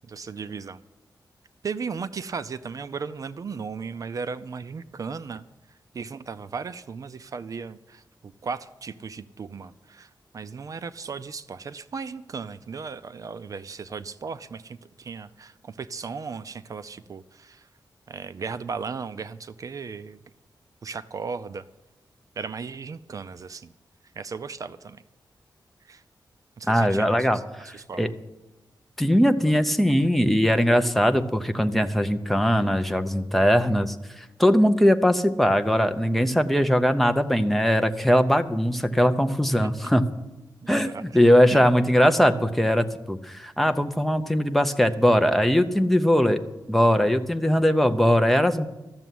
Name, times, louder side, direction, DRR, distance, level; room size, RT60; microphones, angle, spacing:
voice 1, 0.1-0.8 1.6-5.4 5.9-17.7 18.1-20.2 20.8-21.6 22.4-23.7 24.2-25.0 25.9-26.0 26.6-27.4 27.7-28.1 39.6-39.7 40.6-41.2 41.5-41.6, right 5 dB, 45° right, 14 dB, 0.4 m, -36 dB
voice 2, 26.7-28.1 29.0-40.1 40.7-46.4 46.7-48.7, equal, ahead, 7 dB, 0.6 m, -21 dB
13.5 x 7.0 x 9.2 m, 1.1 s
wide cardioid pair, 175°, 8 cm